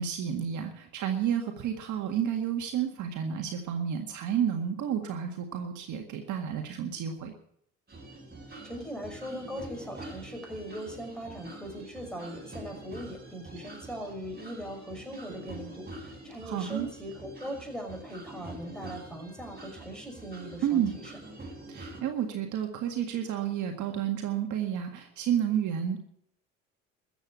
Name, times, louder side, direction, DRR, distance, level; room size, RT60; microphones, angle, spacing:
voice 1, 0.0-7.3 16.4-16.9 20.6-20.9 21.7-26.0, right 9 dB, 55° right, 4 dB, 1.9 m, -31 dB
sound 1, 7.9-22.0, right 2 dB, 25° right, 7.4 m, -45 dB
voice 2, 8.6-21.1, equal, ahead, 3 dB, 5.8 m, -40 dB
14.0 x 8.1 x 9.6 m, 0.70 s
hypercardioid pair, 65°, 36 cm